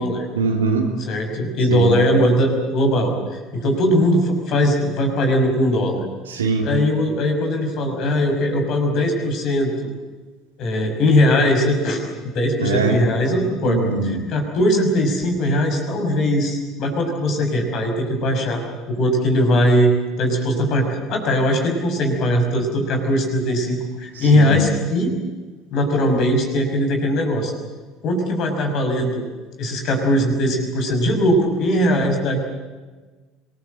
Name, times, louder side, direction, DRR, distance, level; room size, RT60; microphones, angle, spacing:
voice 1, 0.4-0.9 1.7-2.0 6.3-6.7 12.6-13.0 13.6-14.2 24.1-24.6, right 3 dB, 75° right, 3 dB, 3.2 m, -22 dB
voice 2, 1.1-3.1 3.5-6.0 6.6-9.9 10.6-13.8 14.0-18.6 18.9-19.9 20.2-25.1 25.7-27.5 28.0-29.2 29.6-32.4, equal, 50° left, 3 dB, 5.8 m, -20 dB
26.0 x 20.0 x 7.8 m, 1.3 s
figure-of-eight pair, 60°, 0 cm